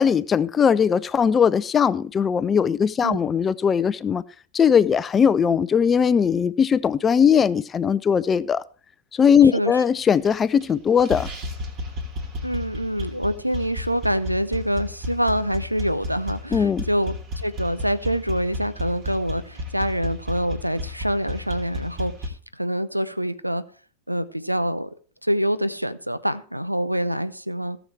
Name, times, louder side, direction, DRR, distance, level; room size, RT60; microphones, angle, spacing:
voice 1, 0.0-4.2 4.5-8.6 9.1-11.3 16.5-16.8, left 7 dB, 20° left, 0.5 m, -19 dB
sound 1, 10.1-10.7 11.0-22.3, left 2 dB, 35° right, 2.9 m, -33 dB
voice 2, 12.4-23.6 24.1-24.9 25.2-27.8, equal, 90° right, 0.7 m, -26 dB
16.5 x 7.2 x 4.5 m
figure-of-eight pair, 90°, 0 cm